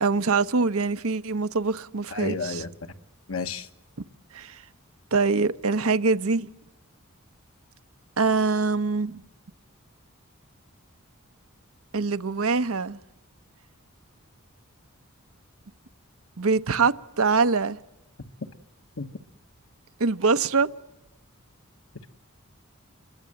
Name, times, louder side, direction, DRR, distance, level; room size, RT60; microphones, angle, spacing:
voice 1, 0.0-2.6 4.3-4.6 5.1-6.5 8.2-9.2 11.9-13.0 16.4-17.8 20.0-20.7, right 4 dB, 90° right, 0.9 m, -24 dB
voice 2, 2.1-2.7 3.3-3.7 19.0-19.1, left 4 dB, 75° left, 1.4 m, -31 dB
27.5 x 22.5 x 7.8 m
head